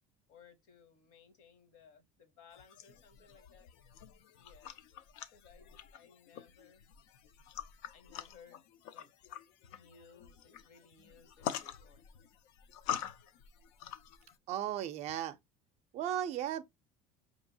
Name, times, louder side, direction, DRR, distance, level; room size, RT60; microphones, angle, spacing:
voice 1, 0.3-3.7 4.3-4.8 5.3-6.8 7.9-8.6 8.9-9.1 9.7-12.2, left 6 dB, 55° left, 0.8 m, -61 dB
sound 1, 2.5-14.4, left 10 dB, 80° left, 0.5 m, -45 dB
voice 2, 14.5-15.4 15.9-16.6, right 11 dB, 45° right, 0.4 m, -35 dB
5.2 x 2.8 x 2.6 m
cardioid pair, 160°, 16 cm